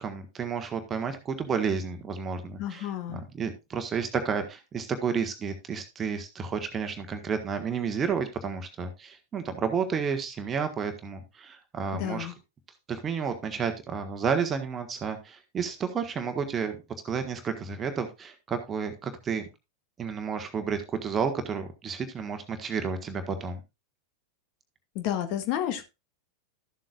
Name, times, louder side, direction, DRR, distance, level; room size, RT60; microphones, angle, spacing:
voice 1, 0.0-12.3 12.9-16.8 17.0-19.5 20.0-23.6, right 6 dB, 20° right, 7 dB, 1.3 m, -31 dB
voice 2, 2.6-3.2 11.9-12.3 24.9-25.8, left 11 dB, 45° left, 9 dB, 1.2 m, -31 dB
13.0 x 7.6 x 2.4 m, 0.25 s
figure-of-eight pair, 90°, 0 cm